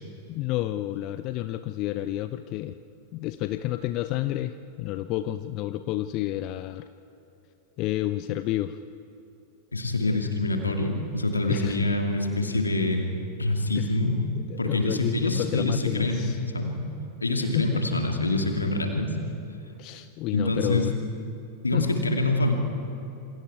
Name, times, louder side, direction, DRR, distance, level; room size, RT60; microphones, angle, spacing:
voice 1, 0.3-2.8 3.1-6.9 7.8-8.8 10.1-10.2 11.5-11.8 13.7-14.0 14.5-16.4 17.4-17.8 19.8-21.0 21.7-21.9, left 15 dB, 40° left, 12 dB, 0.6 m, -30 dB
voice 2, 9.7-13.0 13.4-14.2 14.6-16.2 16.5-16.8 17.2-19.1 20.3-20.9 21.6-22.5, left 2 dB, 80° left, 3 dB, 2.4 m, -25 dB
27.5 x 25.5 x 4.8 m, 2.9 s
figure-of-eight pair, 90°, 0 cm